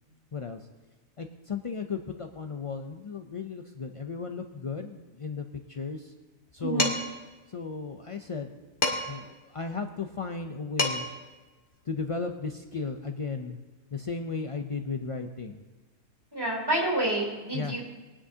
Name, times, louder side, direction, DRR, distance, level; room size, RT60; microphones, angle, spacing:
voice 1, 0.3-0.7 1.2-6.1 6.5-6.9 7.5-8.5 9.1-11.1 11.9-13.6 13.9-15.6 17.5-17.8, left 4 dB, 55° left, 5 dB, 0.3 m, -35 dB
voice 2, 6.6-6.9 16.3-17.8, right 2 dB, 15° right, -3 dB, 3.3 m, -28 dB
Dishes pots and pans, 6.8-7.2 8.8-9.3 10.4-10.5 10.8-11.2, left 2 dB, 40° left, 1.5 m, -28 dB
22.0 x 9.9 x 2.8 m, 1.2 s
omnidirectional pair, 1.4 m